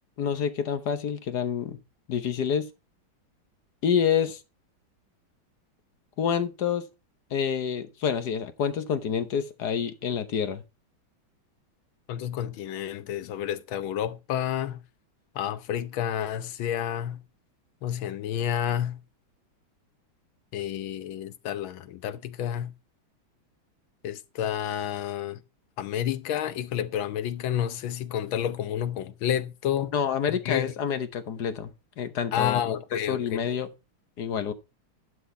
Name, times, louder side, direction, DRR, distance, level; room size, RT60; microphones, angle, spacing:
voice 1, 0.2-1.8 2.1-2.7 3.8-4.4 6.2-6.8 7.3-10.6 29.9-31.7 32.0-33.7 34.2-34.5, left 7 dB, 60° left, 1.4 m, -28 dB
voice 2, 12.1-14.8 15.4-17.2 17.8-19.0 20.5-22.7 24.0-25.4 25.8-29.9 30.3-30.7 32.3-33.4, left 10 dB, 75° left, 1.6 m, -30 dB
11.5 x 6.1 x 4.5 m
omnidirectional pair, 2.2 m